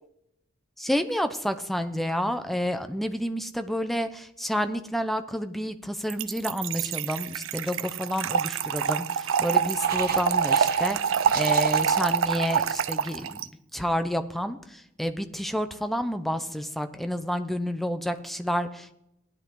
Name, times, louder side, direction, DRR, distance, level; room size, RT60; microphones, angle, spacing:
voice 1, 0.8-13.4 13.7-18.9, equal, ahead, 9 dB, 0.7 m, -29 dB
Trickle dribble / Fill (with liquid), 6.1-13.5, right 7 dB, 70° right, 0.5 m, -26 dB
sound 1, 9.8-13.1, right 5 dB, 45° right, 1.7 m, -39 dB
16.5 x 10.5 x 3.9 m, 0.81 s
head